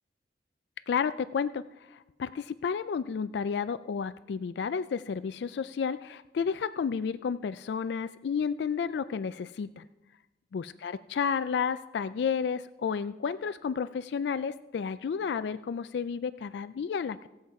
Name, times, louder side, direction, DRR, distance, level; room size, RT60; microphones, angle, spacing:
voice 1, 0.9-9.9 10.5-17.3, left 6 dB, 75° left, 13 dB, 0.3 m, -31 dB
17.0 x 7.3 x 4.7 m, 1.0 s
head